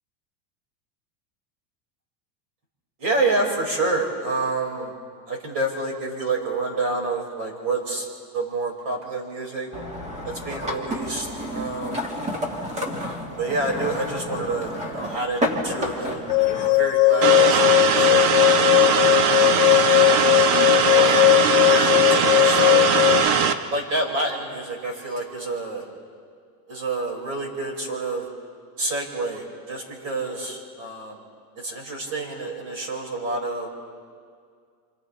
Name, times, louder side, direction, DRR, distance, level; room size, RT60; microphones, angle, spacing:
voice 1, 3.0-4.9 5.3-8.1 8.3-9.7 10.2-12.1 13.3-16.2 16.6-18.4 18.7-19.2 20.9-23.2 23.7-25.9 26.7-28.3 28.8-31.2 31.6-33.7, right 2 dB, 40° right, -1 dB, 5.6 m, -28 dB
sound 1, 9.7-16.7, left 1 dB, 15° right, 1.8 m, -30 dB
sound 2, 16.3-23.3, left 21 dB, 45° left, 0.7 m, -18 dB
sound 3, 17.2-23.5, right 6 dB, 60° right, 1.3 m, -20 dB
29.5 x 26.5 x 3.3 m, 2.1 s
supercardioid pair, 165°, 50 cm